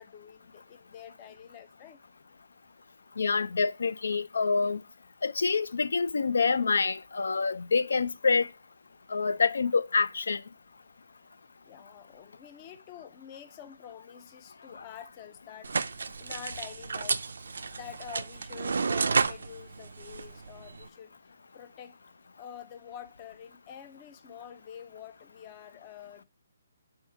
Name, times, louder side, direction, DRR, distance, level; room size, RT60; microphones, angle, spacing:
voice 1, 0.0-2.0 11.7-15.7 16.2-21.1 21.5-21.9 22.4-26.2, left 9 dB, 20° left, 0.4 m, -47 dB
voice 2, 3.2-4.8 5.2-8.5 9.1-10.4, left 4 dB, 80° left, 0.5 m, -26 dB
sound 1, 15.6-20.9, right 4 dB, 70° right, 0.4 m, -32 dB
5.3 x 3.6 x 5.6 m
hypercardioid pair, 175°, 0 cm